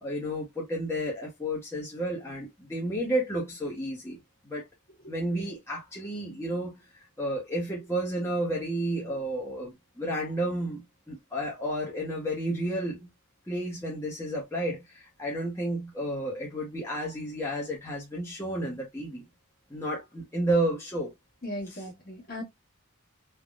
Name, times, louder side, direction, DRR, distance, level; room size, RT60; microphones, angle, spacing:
voice 1, 0.0-4.2 4.4-4.7 5.1-6.8 7.2-13.1 13.5-19.2 19.7-21.1, right 1 dB, 10° left, 0.7 m, -31 dB
voice 2, 21.4-22.4, left 1 dB, 45° left, 1.3 m, -37 dB
3.4 x 2.1 x 2.3 m
head